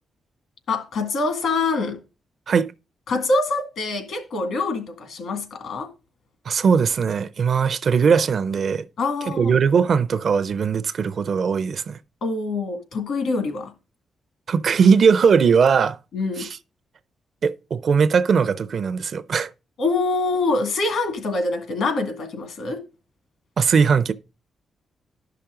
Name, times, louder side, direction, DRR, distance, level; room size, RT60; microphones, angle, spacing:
voice 1, 0.7-2.0 3.1-5.9 9.0-9.6 12.2-13.7 16.1-16.5 19.8-22.8, left 3 dB, 75° left, 1.9 m, -25 dB
voice 2, 6.5-8.9 9.3-12.0 14.5-16.0 16.4-16.6 17.4-19.5 23.6-24.1, right 6 dB, 50° right, 0.5 m, -19 dB
12.0 x 5.8 x 3.7 m
wide cardioid pair, 140°, 0 cm